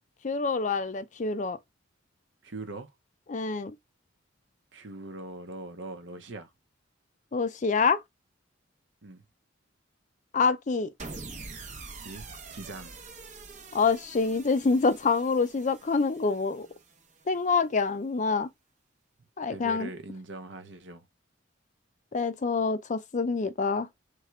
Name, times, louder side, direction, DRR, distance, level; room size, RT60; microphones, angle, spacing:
voice 1, 0.2-1.6 3.3-3.7 7.3-8.0 10.3-10.9 13.7-16.7 17.3-18.5 19.4-19.9 22.1-23.9, left 4 dB, 40° left, 0.5 m, -26 dB
voice 2, 2.4-2.9 4.7-6.5 9.0-9.2 11.9-13.0 19.4-21.1, right 2 dB, 65° right, 0.9 m, -41 dB
sound 1, 11.0-17.3, right 3 dB, 35° right, 0.8 m, -45 dB
3.6 x 3.3 x 4.6 m
head